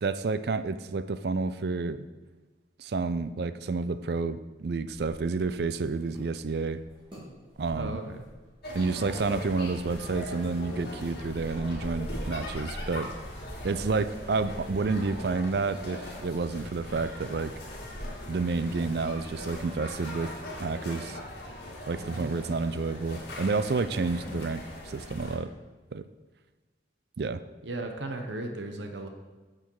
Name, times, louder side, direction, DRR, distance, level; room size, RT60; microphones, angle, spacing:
voice 1, 0.0-2.1 2.8-6.8 7.6-8.0 8.7-13.1 13.6-17.5 18.3-20.3 20.6-21.2 21.9-25.5 25.9-26.1 27.2-27.4, right 4 dB, 55° right, 13 dB, 0.4 m, -30 dB
sound 1, 4.9-20.1, equal, 25° right, 2.8 m, -50 dB
voice 2, 7.7-8.2 22.0-22.5 27.6-29.1, right 2 dB, 75° right, 5 dB, 1.0 m, -36 dB
sound 2, 8.6-25.4, left 1 dB, 55° left, 2.2 m, -40 dB
9.2 x 6.6 x 4.7 m, 1.2 s
head